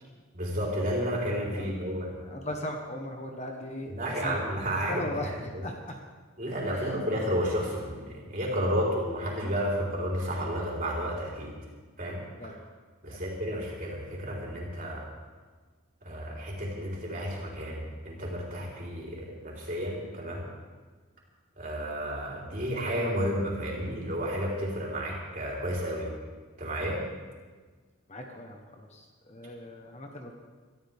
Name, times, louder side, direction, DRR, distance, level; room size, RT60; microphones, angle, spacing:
voice 1, 0.3-2.1 3.9-5.0 6.4-11.5 12.0-12.2 13.0-15.0 16.0-20.5 21.6-26.1 26.6-27.0, equal, 40° right, -3 dB, 4.3 m, -31 dB
voice 2, 2.2-4.4 4.7-6.0 6.7-7.0 7.4-7.6 12.4-12.5 13.1-13.2 28.1-30.3, left 1 dB, 30° left, 2 dB, 1.3 m, -39 dB
24.5 x 14.0 x 3.7 m, 1.4 s
head